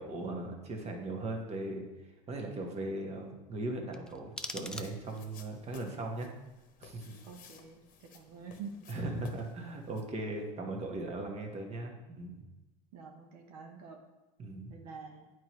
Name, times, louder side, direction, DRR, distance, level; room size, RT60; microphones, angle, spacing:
voice 1, 0.0-6.3 6.8-7.2 8.9-12.4 14.4-14.7, right 2 dB, 35° right, 2 dB, 1.3 m, -38 dB
sound 1, 3.9-5.4, left 1 dB, 5° left, 0.4 m, -43 dB
sound 2, 4.5-10.0, left 6 dB, 45° left, 1.0 m, -57 dB
voice 2, 7.2-8.7 12.9-14.0 14.7-15.2, right 6 dB, 80° right, 3 dB, 0.9 m, -47 dB
8.8 x 4.6 x 3.1 m, 1.1 s
supercardioid pair, 100°, 19 cm